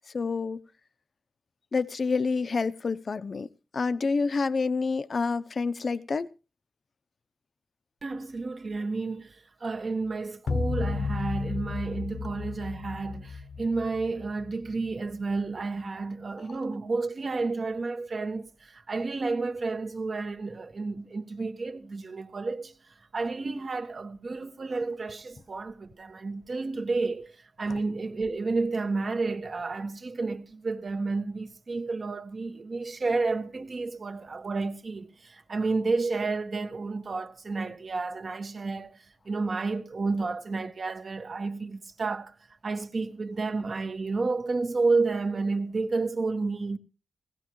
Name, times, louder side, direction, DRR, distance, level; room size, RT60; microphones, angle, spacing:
voice 1, 0.1-0.6 1.7-3.5 3.7-6.3, left 4 dB, 50° left, 0.7 m, -28 dB
voice 2, 8.0-42.3 42.6-46.8, right 3 dB, 45° right, 1.4 m, -31 dB
sound 1, 10.5-14.9, left 4 dB, 70° left, 1.0 m, -33 dB
17.5 x 17.0 x 3.1 m
wide cardioid pair, 95°, 0 cm